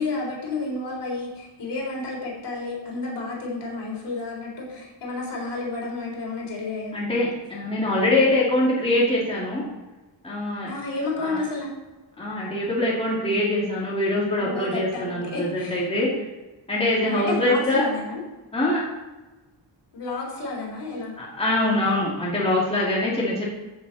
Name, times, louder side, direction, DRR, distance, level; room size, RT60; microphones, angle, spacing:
voice 1, 0.0-6.9 10.7-11.7 14.4-15.9 17.0-18.2 19.9-21.1, left 3 dB, 60° left, -3 dB, 4.0 m, -31 dB
voice 2, 6.9-9.6 10.2-10.7 11.2-11.4 12.2-16.1 16.7-17.9 18.5-18.9 21.2-23.4, left 1 dB, 10° left, -6 dB, 2.5 m, -23 dB
14.0 x 6.9 x 4.2 m, 1.1 s
wide cardioid pair, 150°, 46 cm